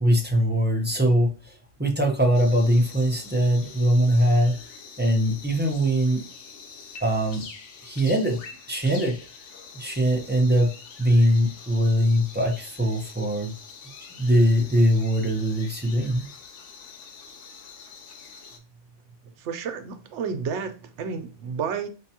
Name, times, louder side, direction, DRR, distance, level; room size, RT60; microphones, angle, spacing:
voice 1, 0.0-1.5 1.8-4.6 5.0-6.2 7.0-7.4 7.8-8.4 8.7-9.2 9.7-10.7 11.0-13.5 14.2-16.3, equal, 10° right, 0.6 m, -21 dB
sound 1, 2.3-18.6, left 5 dB, 85° left, 1.0 m, -45 dB
voice 2, 19.4-21.9, right 6 dB, 85° right, 0.9 m, -31 dB
5.2 x 2.2 x 2.8 m
omnidirectional pair, 1.2 m